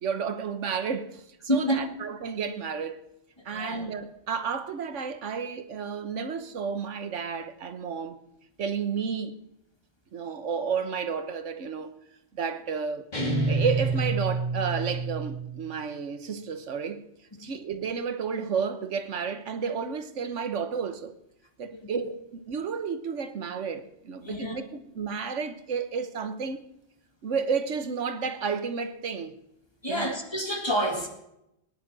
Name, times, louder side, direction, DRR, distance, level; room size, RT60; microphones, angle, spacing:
voice 1, 0.0-3.0 3.4-8.2 8.6-9.4 10.1-12.0 12.4-13.0 13.5-17.0 17.4-21.1 21.6-24.6 24.9-26.6 27.2-29.3 29.9-30.2, right 6 dB, 90° right, 1.4 m, -31 dB
voice 2, 1.5-1.8 3.5-3.8 17.4-17.5 21.7-21.8 24.2-24.6 29.8-31.1, equal, 20° left, 2.2 m, -28 dB
sound 1, 13.1-15.7, right 3 dB, 40° left, 2.3 m, -28 dB
19.0 x 10.5 x 6.2 m
omnidirectional pair, 1.2 m